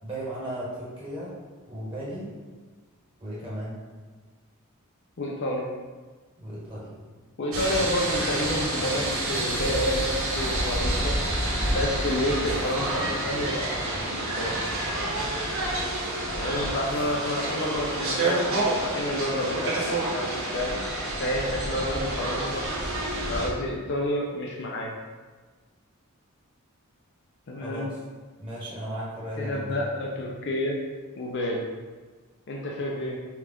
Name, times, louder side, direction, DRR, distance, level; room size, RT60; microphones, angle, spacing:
voice 1, 0.0-1.3 1.7-2.3 3.2-3.8 6.4-7.0 27.6-28.0 28.4-29.8, right 1 dB, 25° right, -7 dB, 1.3 m, -35 dB
voice 2, 5.2-5.7 7.4-11.2 11.7-14.5 16.3-20.7 21.2-22.6 23.3-24.9 27.5-27.9 29.4-30.8 31.2-31.6 32.5-33.2, left 1 dB, 55° left, -1 dB, 0.5 m, -29 dB
sound 1, 7.5-23.5, right 1 dB, 70° right, 1.1 m, -28 dB
5.6 x 2.4 x 3.5 m, 1.4 s
head